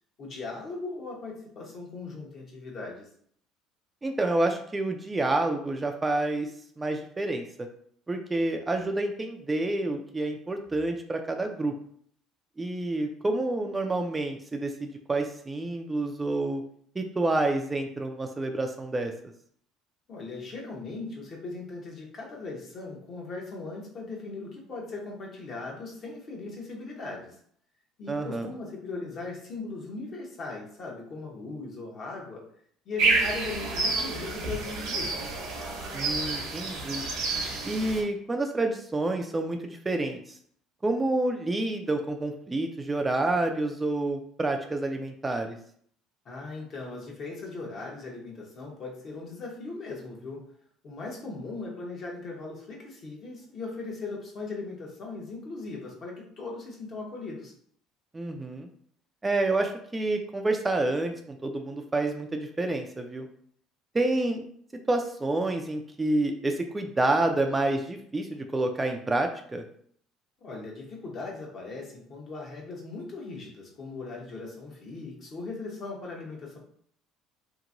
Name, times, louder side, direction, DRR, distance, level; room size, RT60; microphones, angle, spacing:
voice 1, 0.2-3.1 20.1-27.4 28.0-32.5 32.8-35.3 46.2-50.5 50.8-57.5 70.4-76.6, left 3 dB, 50° left, -1 dB, 0.9 m, -39 dB
voice 2, 4.0-6.5 6.8-7.7 8.1-11.7 12.6-16.6 17.0-19.1 28.1-28.5 35.9-37.0 37.7-40.4 40.8-45.6 58.1-58.7 59.2-63.3 63.9-64.4 64.9-69.6, right 2 dB, 20° right, 4 dB, 0.3 m, -28 dB
sound 1, 33.0-38.0, right 3 dB, 70° right, 0.7 m, -29 dB
2.9 x 2.6 x 2.5 m, 0.62 s
supercardioid pair, 95°, 0 cm